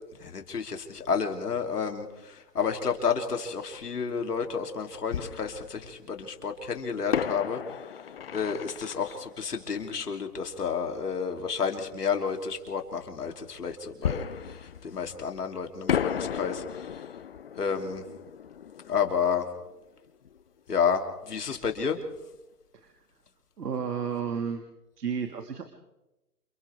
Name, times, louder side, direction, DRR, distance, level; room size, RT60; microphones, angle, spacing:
voice 1, 0.2-7.6 8.3-14.6 14.8-17.0 17.6-18.0 18.9-19.5 20.7-22.0, left 6 dB, 75° left, 4 dB, 3.3 m, -30 dB
Fireworks, 3.8-3.9 5.1-6.2 7.1-10.6 14.0-15.5 15.9-20.4 20.7-20.8 21.3-21.5, left 8 dB, 40° left, 0.6 m, -34 dB
voice 2, 23.6-24.7 25.0-25.7, right 6 dB, 80° right, 6 dB, 2.2 m, -32 dB
28.5 x 26.0 x 3.6 m, 0.97 s
hypercardioid pair, 150°, 47 cm